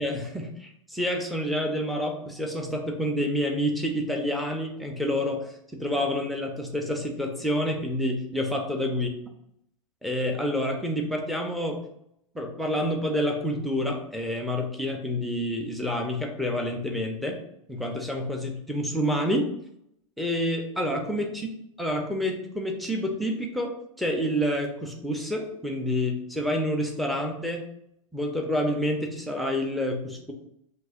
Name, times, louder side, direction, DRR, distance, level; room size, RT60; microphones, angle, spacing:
voice 1, 0.0-9.1 10.0-11.8 12.3-17.4 17.7-19.5 20.2-21.5 21.8-23.7 24.0-27.6 28.1-30.3, equal, ahead, 1 dB, 0.7 m, -28 dB
7.5 x 2.8 x 2.5 m, 0.77 s
hypercardioid pair, 115°, 17 cm